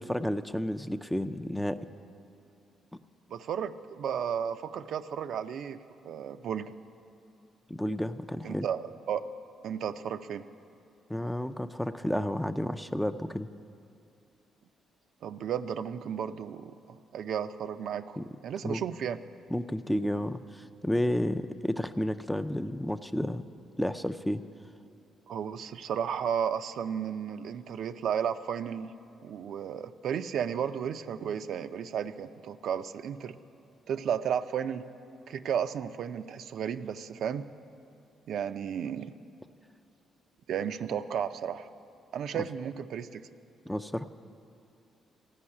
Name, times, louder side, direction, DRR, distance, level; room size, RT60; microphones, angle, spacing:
voice 1, 0.0-1.8 7.7-8.7 11.1-13.5 18.2-18.3 18.6-18.8 19.5-23.5 23.8-24.4 42.3-42.4 43.7-44.0, left 1 dB, 5° left, 9 dB, 0.4 m, -31 dB
voice 2, 3.3-5.8 6.0-6.7 8.4-8.8 9.1-9.2 9.6-10.5 15.2-18.2 18.4-19.2 25.3-28.9 29.2-33.4 33.9-34.9 35.3-37.4 38.3-39.1 40.5-41.7 42.1-43.3, right 8 dB, 70° right, 9 dB, 0.4 m, -33 dB
15.0 x 5.5 x 9.7 m, 2.5 s
cardioid pair, 90°, 0 cm